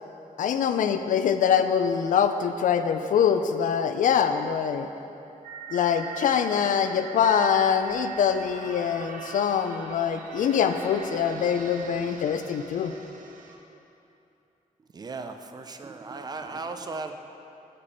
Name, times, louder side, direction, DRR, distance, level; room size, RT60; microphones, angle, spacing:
voice 1, 0.4-4.9 5.7-12.9, left 7 dB, 75° left, 9 dB, 0.4 m, -24 dB
sound 1, 5.4-13.6, right 5 dB, 75° right, 0.7 m, -41 dB
voice 2, 14.9-17.2, right 3 dB, 30° right, 7 dB, 0.4 m, -36 dB
8.2 x 5.3 x 4.2 m, 2.8 s
wide cardioid pair, 150°, 14 cm